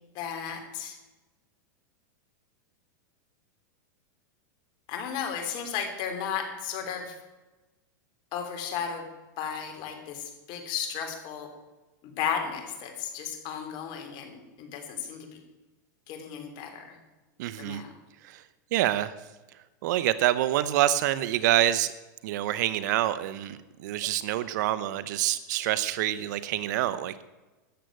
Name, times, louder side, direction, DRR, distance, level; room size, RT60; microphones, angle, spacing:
voice 1, 0.1-1.0 4.9-7.2 8.3-9.0 9.4-11.5 12.0-15.4 16.1-17.0 17.6-17.9, left 7 dB, 45° left, 5 dB, 3.3 m, -34 dB
voice 2, 17.4-17.8 18.2-18.4 18.7-19.1 19.8-21.9 22.2-27.2, right 13 dB, 65° right, 15 dB, 0.7 m, -26 dB
13.5 x 7.7 x 9.0 m, 1.2 s
supercardioid pair, 135°, 10 cm